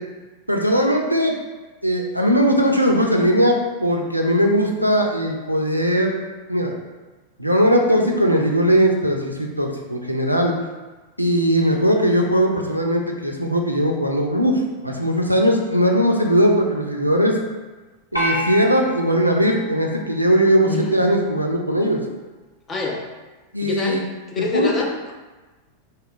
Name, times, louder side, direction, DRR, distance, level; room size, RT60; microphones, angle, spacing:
voice 1, 0.5-1.3 1.8-6.2 6.5-6.7 7.4-10.5 11.2-17.4 18.1-22.0 23.5-24.0 24.4-24.7, equal, 90° right, 1 dB, 0.3 m, -19 dB
sound 1, 18.2-20.6, equal, 85° left, 0.6 m, -29 dB
voice 2, 22.7-23.0 23.6-24.0 24.3-25.1, left 3 dB, 25° left, 0 dB, 0.5 m, -25 dB
2.9 x 2.8 x 2.4 m, 1.2 s
figure-of-eight pair, 90°, 0 cm